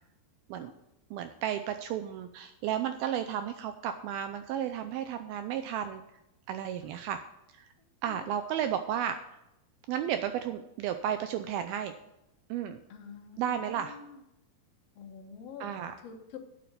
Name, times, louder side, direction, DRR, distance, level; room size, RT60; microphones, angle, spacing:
voice 1, 1.1-6.0 6.5-7.2 7.5-7.7 8.0-9.2 9.9-11.9 12.5-12.8 13.4-14.0 15.6-15.9, right 10 dB, 85° right, 8 dB, 2.2 m, -33 dB
voice 2, 12.9-14.2 14.9-16.4, left 6 dB, 80° left, 2 dB, 1.4 m, -47 dB
9.0 x 7.7 x 6.8 m, 0.88 s
omnidirectional pair, 4.9 m